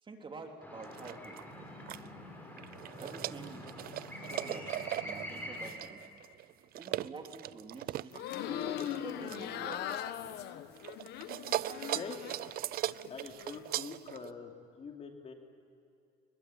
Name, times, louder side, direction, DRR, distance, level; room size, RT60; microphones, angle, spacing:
voice 1, 0.0-1.4 3.0-4.0 4.3-4.7 5.0-6.0 6.7-8.1 8.5-9.9, right 3 dB, 30° right, 3 dB, 3.2 m, -47 dB
sound 1, 0.6-5.7, left 1 dB, 10° left, 5.7 m, -45 dB
sound 2, 0.8-2.1 2.6-10.5 10.8-14.3, right 14 dB, 65° right, 0.5 m, -39 dB
sound 3, 8.1-12.5 12.9-13.6, left 11 dB, 80° left, 1.2 m, -40 dB
voice 2, 11.7-12.2 13.1-14.5 14.8-15.3, left 5 dB, 40° left, 3 dB, 3.1 m, -45 dB
23.5 x 22.0 x 8.8 m, 2.5 s
cardioid pair, 110°, 17 cm